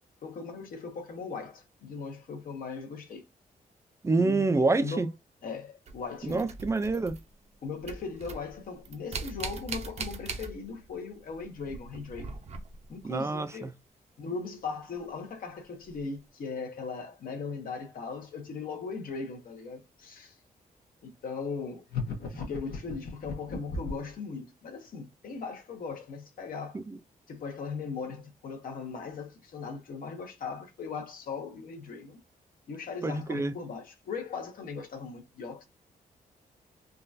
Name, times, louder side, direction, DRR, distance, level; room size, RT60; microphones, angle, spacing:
voice 1, 0.2-3.2 4.2-5.1 5.4-6.5 7.6-12.4 12.9-13.7 14.2-20.4 21.0-21.8 22.3-26.8 27.3-32.2 32.7-35.6, left 5 dB, 70° left, 1.1 m, -38 dB
voice 2, 4.0-5.1 6.2-7.2 13.0-13.7 26.9-27.0 33.0-33.5, right 3 dB, 20° right, 0.4 m, -27 dB
sound 1, 5.9-7.5 7.8-11.0 11.2-13.0 14.9-15.0 15.8-16.0, right 4 dB, 45° right, 0.7 m, -40 dB
sound 2, 21.9-24.1, left 4 dB, 90° left, 1.2 m, -36 dB
3.8 x 2.4 x 2.6 m
wide cardioid pair, 125°, 15 cm